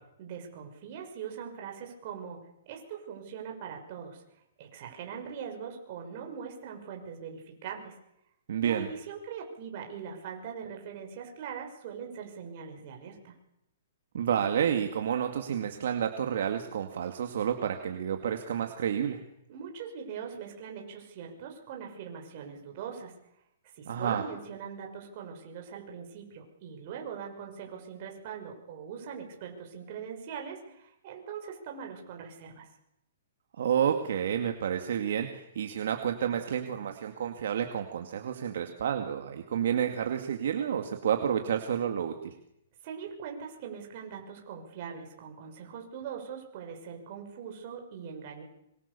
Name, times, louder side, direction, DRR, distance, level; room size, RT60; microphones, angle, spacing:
voice 1, 0.2-4.2 4.6-7.9 8.6-13.3 19.5-23.1 23.7-32.7 42.8-48.4, right 7 dB, 40° right, 2 dB, 6.1 m, -41 dB
voice 2, 8.5-8.9 14.1-19.2 23.8-24.2 33.6-42.3, right 8 dB, 65° right, 5 dB, 2.3 m, -30 dB
25.5 x 25.0 x 7.0 m, 0.81 s
hypercardioid pair, 165°, 0 cm